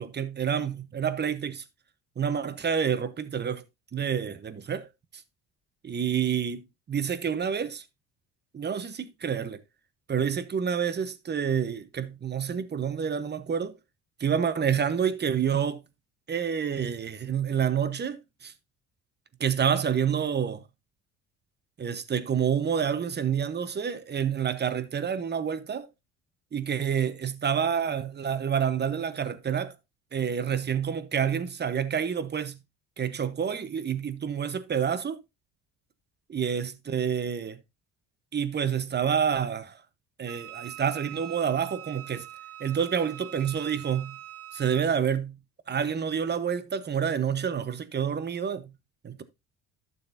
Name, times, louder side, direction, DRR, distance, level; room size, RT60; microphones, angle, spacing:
voice 1, 0.0-1.6 2.2-3.6 3.9-4.9 5.8-7.8 8.5-9.6 10.1-13.7 14.2-15.8 16.3-18.5 19.4-20.6 21.8-25.9 26.5-29.7 30.1-32.6 33.0-35.2 36.3-37.6 38.3-39.7 40.2-42.3 42.6-44.2 44.5-45.4 45.7-48.7 49.0-49.2, right 7 dB, 30° right, 1.0 m, -28 dB
Wind instrument woodwind instrument, 40.3-44.9, right 12 dB, 70° right, 1.2 m, -43 dB
12.0 x 6.8 x 2.6 m
supercardioid pair, 85°, 34 cm